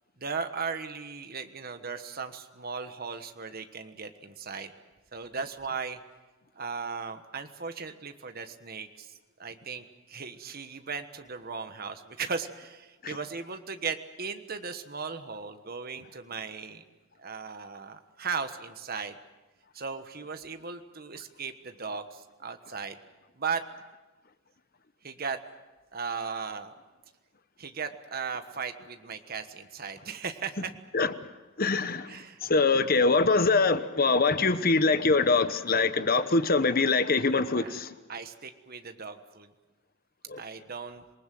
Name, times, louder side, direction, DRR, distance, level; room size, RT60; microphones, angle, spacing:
voice 1, 0.2-4.7 5.1-6.0 6.6-9.1 9.4-16.8 17.2-19.2 19.7-23.0 23.4-23.6 25.0-25.4 25.9-26.7 27.6-30.7 32.1-32.4 37.5-37.8 38.1-39.5 40.4-41.0, right 5 dB, 45° right, 1.3 m, -37 dB
voice 2, 31.6-32.1 32.4-37.9 40.3-40.4, left 3 dB, 45° left, 1.0 m, -24 dB
27.0 x 19.5 x 7.7 m
head